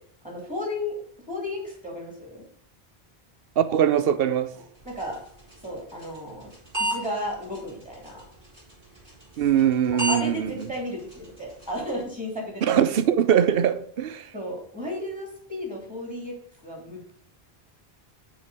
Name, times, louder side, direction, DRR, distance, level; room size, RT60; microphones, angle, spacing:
voice 1, 0.2-1.0 1.3-2.4 4.8-5.2 5.6-6.5 6.8-8.2 10.1-12.8 14.3-16.3 16.6-17.2, left 1 dB, 10° right, 3.3 m, -34 dB
voice 2, 3.6-4.5 9.4-10.7 12.6-14.3, right 9 dB, 70° right, 0.9 m, -22 dB
sound 1, 4.7-12.0, right 1 dB, 50° right, 4.3 m, -36 dB
7.0 x 5.2 x 6.4 m
omnidirectional pair, 1.0 m